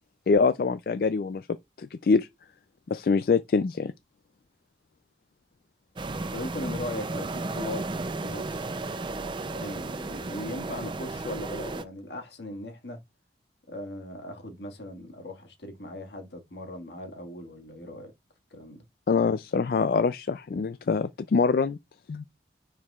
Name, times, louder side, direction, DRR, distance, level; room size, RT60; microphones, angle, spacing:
voice 1, 0.3-1.5 1.8-2.3 2.9-3.9 19.1-21.8 22.1-22.2, left 4 dB, 55° left, 0.3 m, -24 dB
sound 1, 6.0-11.8, right 2 dB, 25° right, 0.5 m, -34 dB
voice 2, 6.3-7.8 8.2-13.0 13.7-18.1 18.5-18.8, left 1 dB, 75° left, 1.8 m, -39 dB
9.6 x 4.6 x 2.4 m
head